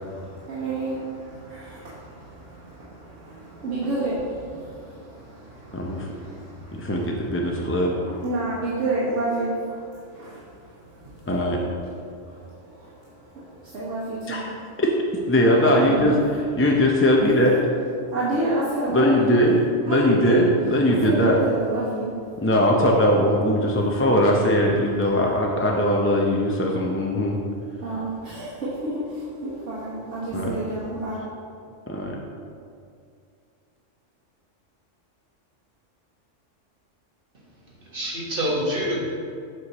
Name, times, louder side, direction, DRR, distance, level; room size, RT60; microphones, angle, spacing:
voice 1, 0.0-14.8 15.5-16.2 18.1-19.4 19.9-22.5 23.8-24.0 25.0-25.2 27.1-31.2, right 2 dB, 75° right, -9 dB, 1.6 m, -31 dB
voice 2, 5.7-6.1 6.7-7.9 11.3-11.6 14.3-14.4 14.8-14.9 15.3-16.1 16.6-17.5 18.9-19.6 19.8-21.4 22.4-27.4 30.3-30.5 31.9-32.1, equal, 15° left, -1 dB, 0.4 m, -20 dB
voice 3, 37.8-39.0, equal, 45° right, -4 dB, 1.7 m, -26 dB
7.6 x 6.4 x 4.2 m, 2.3 s
omnidirectional pair, 1.3 m